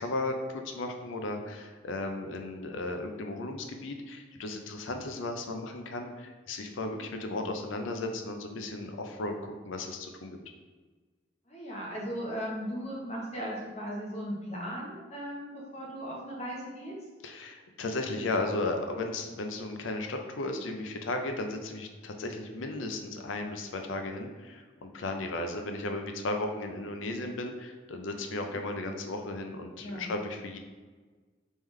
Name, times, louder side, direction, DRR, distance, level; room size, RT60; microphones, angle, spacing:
voice 1, 0.0-10.4 17.2-30.6, left 2 dB, 85° left, 5 dB, 0.5 m, -35 dB
voice 2, 11.5-17.0 29.8-30.1, equal, 35° left, -3 dB, 0.9 m, -37 dB
3.6 x 3.2 x 3.2 m, 1.4 s
head